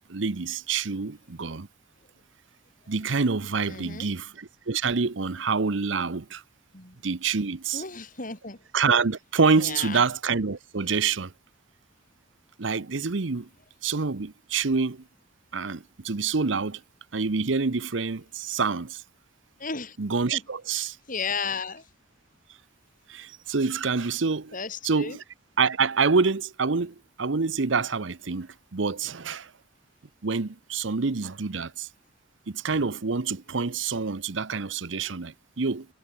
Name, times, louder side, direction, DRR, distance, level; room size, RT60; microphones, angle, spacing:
voice 1, 0.1-1.7 2.9-6.4 7.0-7.8 8.7-11.3 12.6-13.5 13.8-15.0 15.5-16.8 17.1-19.0 20.0-21.0 23.1-24.5 24.8-25.2 25.6-29.5 30.2-31.9 32.5-35.9, right 4 dB, 75° right, 0.9 m, -27 dB
voice 2, 3.7-4.1 6.7-7.0 7.7-8.6 9.6-10.0 19.6-20.0 20.3-20.4 20.7-21.9 24.5-25.2, left 5 dB, 45° left, 5.1 m, -34 dB
head